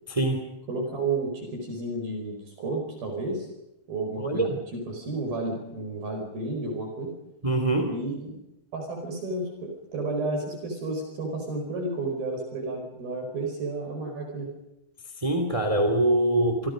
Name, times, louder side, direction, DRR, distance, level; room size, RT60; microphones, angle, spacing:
voice 1, 0.1-0.4 4.2-4.5 7.4-7.9 15.2-16.7, right 1 dB, 10° right, 5 dB, 1.8 m, -23 dB
voice 2, 0.7-3.5 3.9-7.1 7.9-8.3 8.7-14.5, right 2 dB, 50° right, 2 dB, 6.5 m, -32 dB
28.0 x 27.0 x 5.3 m, 0.91 s
omnidirectional pair, 5.4 m